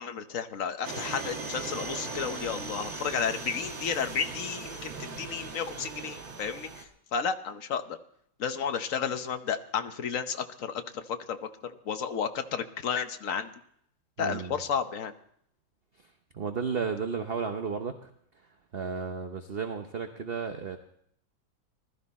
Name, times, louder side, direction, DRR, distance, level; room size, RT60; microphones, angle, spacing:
voice 1, 0.0-8.0 8.4-13.5 14.2-15.1, left 7 dB, 55° left, 8 dB, 1.1 m, -32 dB
sound 1, 0.8-6.8, right 3 dB, 75° right, 2.7 m, -39 dB
voice 2, 14.2-14.6 16.0-18.1 18.7-20.8, right 5 dB, 45° right, 6 dB, 0.8 m, -33 dB
20.0 x 13.0 x 4.2 m, 0.70 s
omnidirectional pair, 2.1 m